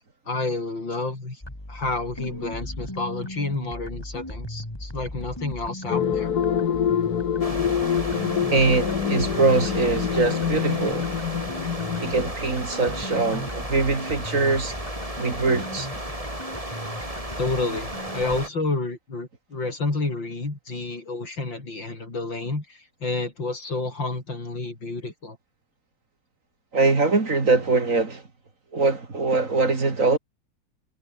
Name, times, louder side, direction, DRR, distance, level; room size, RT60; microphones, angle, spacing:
voice 1, 0.3-1.4 1.7-6.3 17.4-25.4, left 3 dB, 85° left, 6.7 m, -30 dB
sound 1, 1.4-18.4, left 1 dB, 10° left, 4.1 m, -37 dB
sound 2, 5.9-12.3, left 8 dB, 60° left, 1.8 m, -26 dB
sound 3, 7.4-18.5, right 1 dB, 15° right, 5.0 m, -35 dB
voice 2, 8.5-11.1 12.0-14.7 15.2-15.9 26.7-28.2 28.7-30.2, right 3 dB, 45° right, 3.0 m, -22 dB
omnidirectional pair, 2.0 m